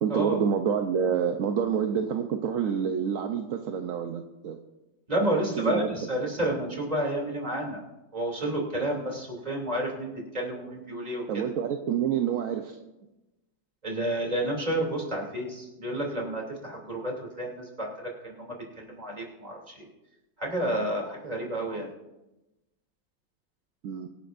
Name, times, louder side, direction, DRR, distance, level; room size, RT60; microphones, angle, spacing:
voice 1, 0.0-4.6 5.3-5.9 11.3-12.8 23.8-24.1, right 7 dB, 60° right, 5 dB, 0.9 m, -28 dB
voice 2, 5.1-7.8 8.1-11.5 13.8-19.9 20.4-21.9, right 1 dB, 20° right, -1 dB, 2.8 m, -30 dB
24.0 x 10.5 x 2.6 m, 0.99 s
omnidirectional pair, 2.0 m